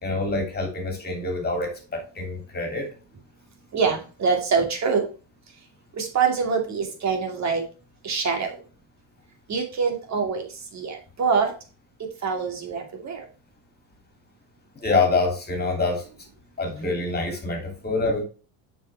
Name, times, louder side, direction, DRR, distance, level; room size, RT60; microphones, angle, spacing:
voice 1, 0.0-2.9 14.8-16.0 16.6-18.2, left 3 dB, 25° left, 3 dB, 2.8 m, -26 dB
voice 2, 3.7-5.1 6.0-7.6 8.0-8.5 9.5-10.5 10.7-11.5 12.2-13.2, right 5 dB, 45° right, 4 dB, 2.6 m, -24 dB
7.1 x 5.6 x 3.4 m, 0.34 s
supercardioid pair, 105°, 40 cm